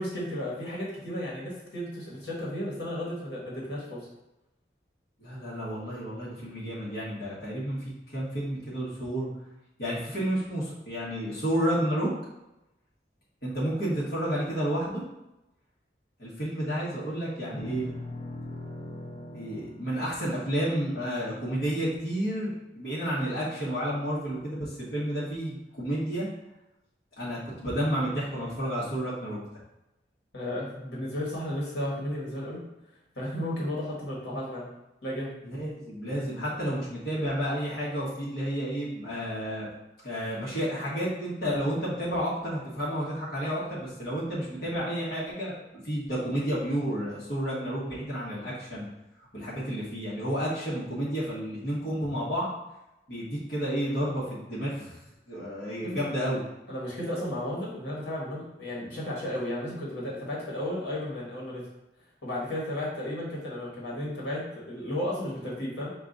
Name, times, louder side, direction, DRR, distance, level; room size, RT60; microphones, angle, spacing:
voice 1, 0.0-4.1 30.3-32.6 33.1-34.7 35.0-35.3 55.8-56.0 56.7-61.7 62.2-65.9, left 1 dB, 80° left, -5 dB, 1.4 m, -33 dB
voice 2, 5.2-7.8 8.1-9.3 9.8-12.1 13.4-15.0 16.2-17.9 19.3-26.3 27.2-29.4 35.4-39.7 40.0-48.9 49.3-52.5 53.1-55.0 55.3-56.4, equal, 55° left, -8 dB, 1.3 m, -31 dB
sound 1, 17.5-22.0, left 1 dB, 25° left, 0.5 m, -42 dB
5.4 x 2.4 x 3.8 m, 0.94 s
head